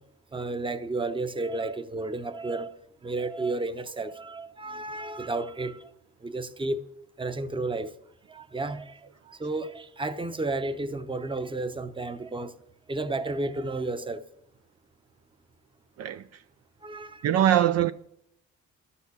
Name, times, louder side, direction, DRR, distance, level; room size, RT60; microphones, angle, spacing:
voice 1, 0.3-2.7 3.0-5.9 6.2-6.8 7.2-7.9 8.3-9.0 9.3-12.5 12.9-14.2 16.8-17.2, right 2 dB, 15° right, 0.8 m, -32 dB
voice 2, 16.0-16.4 17.2-17.9, right 11 dB, 55° right, 0.5 m, -23 dB
12.0 x 7.1 x 8.2 m
cardioid pair, 90°, 30 cm